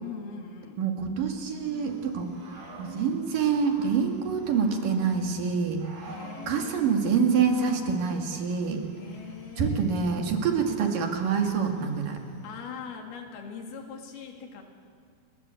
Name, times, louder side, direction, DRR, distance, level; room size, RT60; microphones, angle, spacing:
voice 1, 0.0-0.8 6.0-7.0 8.9-10.1 10.4-10.7 12.4-14.6, left 6 dB, 75° left, 3 dB, 4.4 m, -41 dB
voice 2, 0.8-2.3 2.8-5.8 6.5-8.8 9.6-12.2, right 6 dB, 60° right, 3 dB, 3.6 m, -26 dB
Growling / Cricket, 1.6-12.5, right 2 dB, 75° right, 7.0 m, -46 dB
30.0 x 22.5 x 8.2 m, 2.1 s
omnidirectional pair, 4.6 m